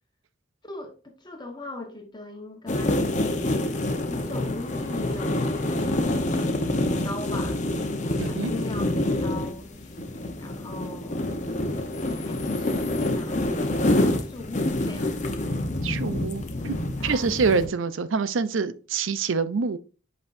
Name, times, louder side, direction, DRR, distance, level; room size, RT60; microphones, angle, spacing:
voice 1, 0.6-7.6 8.3-11.3 12.0-15.2 17.0-17.7, left 2 dB, 20° left, 1.2 m, -40 dB
sound 1, 2.7-17.7, left 1 dB, 35° left, 0.8 m, -27 dB
voice 2, 8.2-8.5 15.8-16.8 17.0-19.8, right 5 dB, 85° right, 0.5 m, -26 dB
8.0 x 5.3 x 2.6 m
head